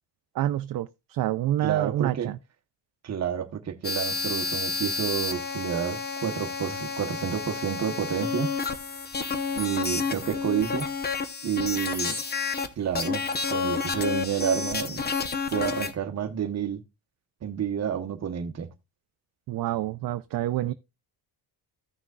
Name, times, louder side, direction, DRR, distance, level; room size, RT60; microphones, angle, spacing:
voice 1, 0.3-2.4 19.5-20.7, right 13 dB, 55° right, 0.5 m, -28 dB
voice 2, 1.6-2.3 3.0-8.5 9.5-10.9 11.4-12.2 12.8-13.2 13.5-15.0 15.5-16.8 17.4-18.7, right 9 dB, 35° right, 1.0 m, -29 dB
sound 1, 3.8-12.7 12.9-15.9, left 5 dB, 25° left, 0.7 m, -30 dB
15.0 x 6.1 x 2.3 m
cardioid pair, 160°, 43 cm